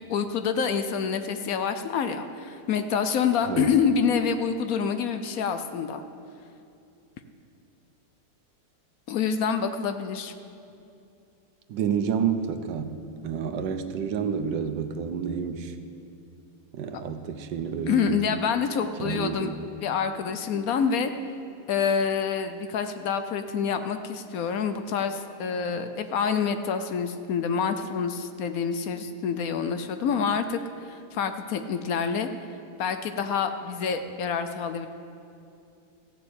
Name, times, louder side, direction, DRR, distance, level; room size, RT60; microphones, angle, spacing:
voice 1, 0.0-6.0 9.1-10.3 17.9-19.5 19.8-21.1 21.7-32.3 32.8-34.9, left 6 dB, 65° left, 9 dB, 1.0 m, -27 dB
voice 2, 11.7-13.0 13.2-15.7 16.7-18.2 19.0-19.7, right 7 dB, 85° right, 9 dB, 1.4 m, -29 dB
14.5 x 6.9 x 8.2 m, 2.6 s
omnidirectional pair, 1.9 m